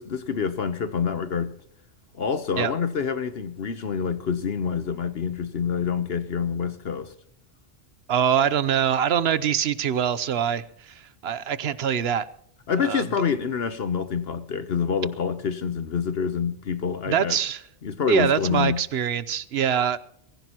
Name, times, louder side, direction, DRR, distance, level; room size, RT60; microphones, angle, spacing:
voice 1, 0.0-1.5 2.1-7.1 12.7-17.4 17.8-18.8, left 6 dB, 60° left, 1.0 m, -27 dB
voice 2, 8.1-12.3 12.8-13.0 17.1-17.6 18.1-20.0, right 8 dB, 65° right, 1.0 m, -24 dB
23.0 x 15.0 x 2.9 m
omnidirectional pair, 1.2 m